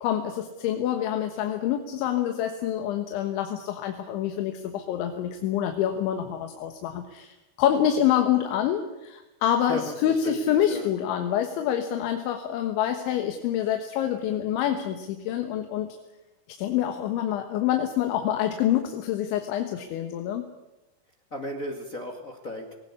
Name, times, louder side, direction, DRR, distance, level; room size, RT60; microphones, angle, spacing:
voice 1, 0.0-16.0 16.6-20.5, left 10 dB, 90° left, 6 dB, 3.7 m, -26 dB
voice 2, 9.7-10.9 21.3-22.7, equal, 45° left, 2 dB, 1.0 m, -35 dB
19.5 x 19.0 x 9.7 m, 1.0 s
omnidirectional pair, 5.2 m